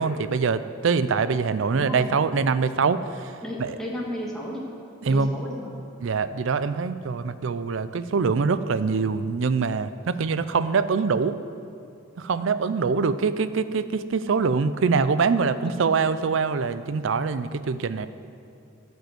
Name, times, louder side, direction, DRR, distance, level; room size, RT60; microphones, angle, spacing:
voice 1, 0.0-3.3 3.6-3.8 5.0-5.3 6.0-11.4 12.2-18.1, right 5 dB, 65° right, 13 dB, 0.4 m, -24 dB
voice 2, 1.7-2.1 3.4-4.6 5.1-5.7 15.6-15.9, equal, 5° left, -4 dB, 1.6 m, -33 dB
13.0 x 5.4 x 7.9 m, 2.6 s
head